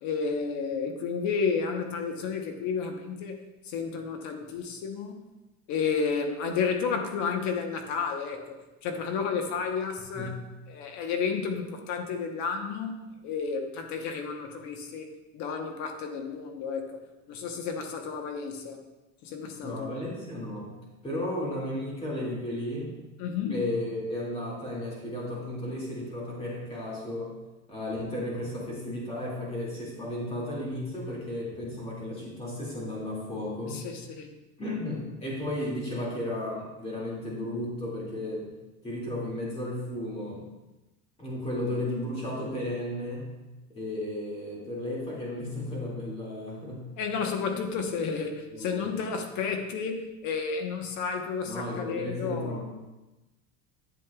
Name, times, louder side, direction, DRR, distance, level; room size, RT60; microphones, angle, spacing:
voice 1, 0.0-5.2 5.7-8.6 8.8-10.3 10.7-15.1 15.3-17.0 17.3-18.8 19.2-19.9 23.2-23.6 33.7-34.3 47.0-52.6, left 5 dB, 45° left, 5 dB, 1.0 m, -31 dB
voice 2, 19.6-20.7 21.0-23.0 23.5-27.4 27.7-33.9 34.6-38.5 38.8-40.5 41.2-43.4 43.7-47.0 47.5-47.6 48.5-48.8 51.5-52.6, left 1 dB, 15° left, -4 dB, 2.2 m, -34 dB
11.0 x 7.6 x 2.3 m, 1.1 s
cardioid pair, 160°, 40 cm